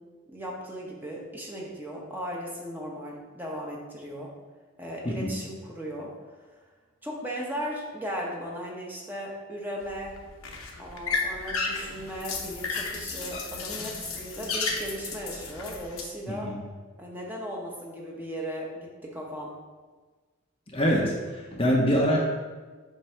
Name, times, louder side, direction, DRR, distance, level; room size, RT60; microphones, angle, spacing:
voice 1, 0.3-4.3 4.8-6.1 7.0-10.2 10.8-16.6 17.0-19.6, equal, 10° right, -3 dB, 0.8 m, -37 dB
voice 2, 5.0-5.3 16.3-16.6 20.7-22.2, equal, 25° left, -1 dB, 0.7 m, -25 dB
sound 1, 9.8-16.0, left 4 dB, 75° left, 0.9 m, -33 dB
7.6 x 2.6 x 5.6 m, 1.4 s
head